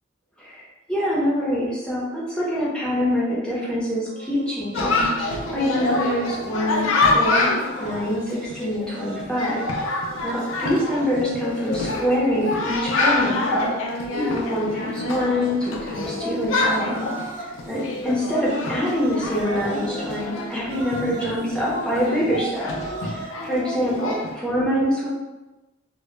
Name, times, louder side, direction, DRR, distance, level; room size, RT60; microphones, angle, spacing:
voice 1, 0.9-7.5 7.8-13.7 14.1-17.1 17.4-22.7 23.1-25.1, equal, 5° left, -7 dB, 0.5 m, -25 dB
sound 1, 4.1-6.5 7.5-15.4 16.6-23.6, right 2 dB, 70° right, 0.5 m, -41 dB
Chatter, 4.7-24.3, left 2 dB, 85° left, 0.4 m, -26 dB
2.0 x 2.0 x 3.1 m, 1.1 s
head